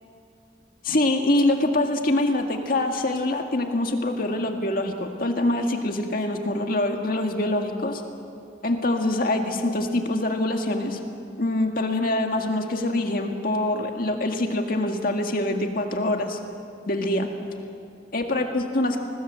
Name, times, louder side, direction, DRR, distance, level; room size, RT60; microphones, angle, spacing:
voice 1, 0.8-8.0 8.6-11.0 11.4-16.4 16.9-17.3 18.1-19.0, left 1 dB, 55° left, 3 dB, 1.9 m, -24 dB
24.5 x 20.0 x 7.6 m, 2.5 s
head